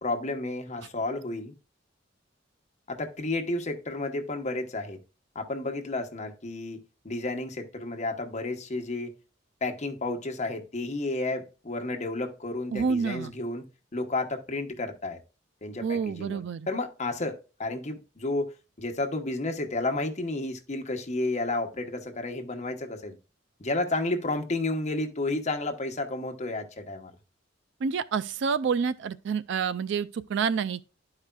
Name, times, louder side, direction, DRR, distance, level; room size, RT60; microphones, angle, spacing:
voice 1, 0.0-1.5 2.9-5.0 5.3-9.1 9.6-13.6 13.9-15.2 15.6-16.4 16.7-23.2 23.6-27.1, left 2 dB, 40° left, 1.0 m, -31 dB
voice 2, 12.7-13.3 15.8-16.7 27.8-30.9, right 6 dB, 65° right, 0.3 m, -28 dB
12.5 x 4.8 x 2.2 m
head